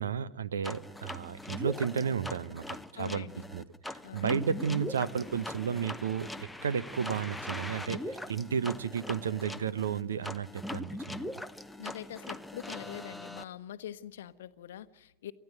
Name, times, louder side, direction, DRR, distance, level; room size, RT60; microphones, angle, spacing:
voice 1, 0.0-3.3 3.5-11.3, right 7 dB, 65° right, 0.9 m, -33 dB
sound 1, 0.6-13.4, left 1 dB, 5° left, 0.8 m, -41 dB
voice 2, 3.0-3.5 4.0-4.3 11.8-15.3, left 11 dB, 60° left, 1.0 m, -44 dB
29.5 x 13.5 x 9.2 m
figure-of-eight pair, 90°, 0 cm